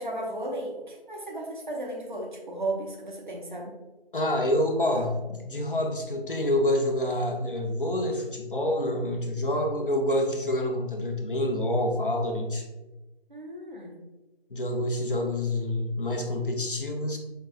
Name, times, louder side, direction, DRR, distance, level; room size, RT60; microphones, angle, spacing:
voice 1, 0.0-3.8 13.3-14.0, right 1 dB, 50° right, -1 dB, 0.9 m, -35 dB
voice 2, 4.1-12.6 14.5-17.2, left 1 dB, 60° left, 3 dB, 0.7 m, -27 dB
5.3 x 2.5 x 2.4 m, 1.1 s
figure-of-eight pair, 170°, 31 cm